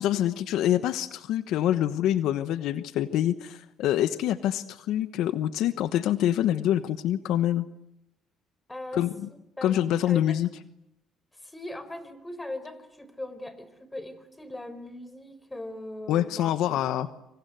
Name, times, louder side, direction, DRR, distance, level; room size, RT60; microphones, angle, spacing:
voice 1, 0.0-7.7 8.9-9.1 9.6-10.5 16.1-17.1, left 12 dB, 75° left, 13 dB, 1.1 m, -26 dB
voice 2, 8.7-9.0 9.6-10.4 11.3-17.2, left 1 dB, 10° left, 13 dB, 4.4 m, -40 dB
27.5 x 26.0 x 7.9 m, 0.83 s
cardioid pair, 95°, 0 cm